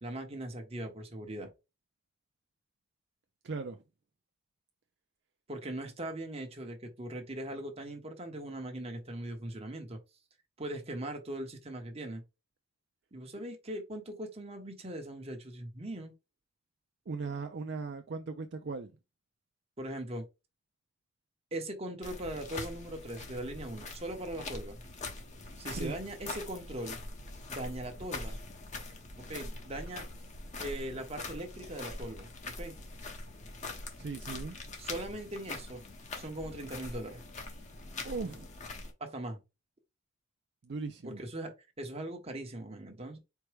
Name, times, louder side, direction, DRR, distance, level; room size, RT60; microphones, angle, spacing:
voice 1, 0.0-1.5 5.5-10.0 10.6-12.2 13.1-16.1 19.8-20.2 21.5-24.8 25.6-27.0 27.5-28.4 29.3-30.0 30.6-32.3 32.6-32.7 34.8-35.8 36.2-37.2 39.0-39.4 41.0-43.2, right 1 dB, 35° right, 1.1 m, -40 dB
voice 2, 3.4-3.8 17.1-18.9 25.7-25.9 34.0-34.5 38.0-38.5 40.6-41.2, right 4 dB, 65° right, 0.5 m, -38 dB
sound 1, 22.0-38.9, left 2 dB, 40° left, 0.9 m, -43 dB
4.6 x 2.2 x 4.6 m
head